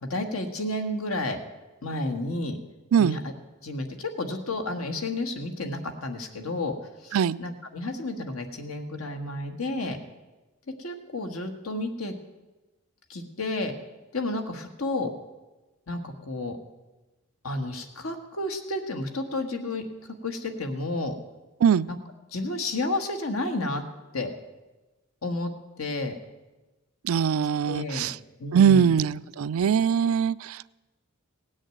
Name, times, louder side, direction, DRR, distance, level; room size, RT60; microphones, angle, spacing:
voice 1, 0.0-1.4 1.8-2.6 3.0-3.2 3.6-6.7 7.0-10.0 10.8-12.1 13.1-13.7 14.1-15.1 15.9-16.6 17.4-19.9 20.2-21.1 22.3-23.8 24.1-24.3 25.2-25.5 25.8-26.1 27.7-28.1 28.4-28.9, left 2 dB, 80° left, 5 dB, 1.5 m, -31 dB
voice 2, 27.0-28.2 28.5-30.8, right 7 dB, 75° right, 18 dB, 0.4 m, -22 dB
17.0 x 6.4 x 9.0 m, 1.1 s
head